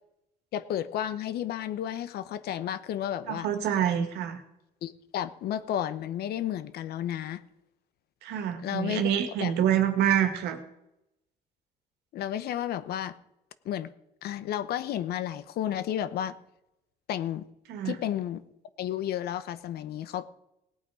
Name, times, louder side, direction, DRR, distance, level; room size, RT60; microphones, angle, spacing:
voice 1, 0.5-3.5 4.8-7.4 8.6-9.5 12.1-13.1 13.6-13.9 14.2-16.3 17.1-17.5 17.8-18.4 18.8-20.2, left 11 dB, 70° left, 14 dB, 0.9 m, -32 dB
voice 2, 3.3-4.4 8.2-10.6 17.7-18.0, right 10 dB, 85° right, 7 dB, 1.8 m, -26 dB
18.0 x 8.6 x 4.9 m, 0.86 s
cardioid pair, 110°, 17 cm